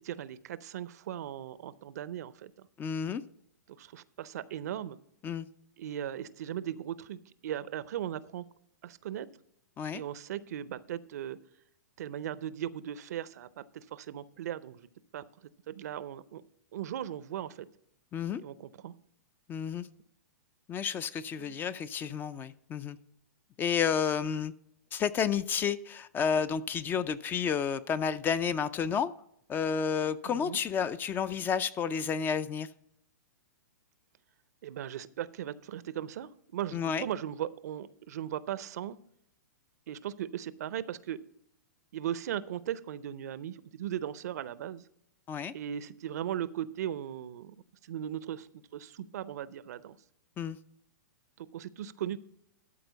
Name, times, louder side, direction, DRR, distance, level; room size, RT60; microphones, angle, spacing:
voice 1, 0.0-2.7 3.8-5.0 5.8-8.5 8.8-9.3 9.9-11.4 12.0-14.9 15.1-15.2 15.7-16.4 16.7-17.7 18.4-18.9 21.4-21.5 30.2-30.6 34.6-39.0 39.9-41.2 41.9-44.8 45.5-47.6 47.8-50.0 51.4-52.2, right 10 dB, 65° right, 17 dB, 0.6 m, -38 dB
voice 2, 2.8-3.2 5.2-5.5 9.8-10.0 18.1-18.4 19.5-19.9 20.7-23.0 23.6-24.5 24.9-29.1 29.5-32.7 36.7-37.1 45.3-45.5 50.4-50.6, left 7 dB, 20° left, 16 dB, 0.4 m, -31 dB
12.5 x 4.4 x 6.8 m, 0.75 s
hypercardioid pair, 120°, 9 cm